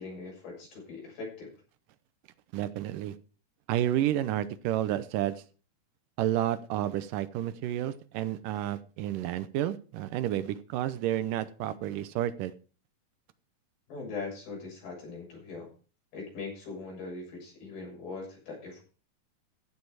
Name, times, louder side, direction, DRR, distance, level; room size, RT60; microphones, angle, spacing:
voice 1, 0.0-1.5 13.9-15.7 16.1-18.8, left 4 dB, 75° left, 8.6 m, -41 dB
voice 2, 2.5-3.2 3.7-5.4 6.2-12.5, right 12 dB, 75° right, 2.2 m, -30 dB
15.5 x 7.6 x 4.8 m
omnidirectional pair, 4.3 m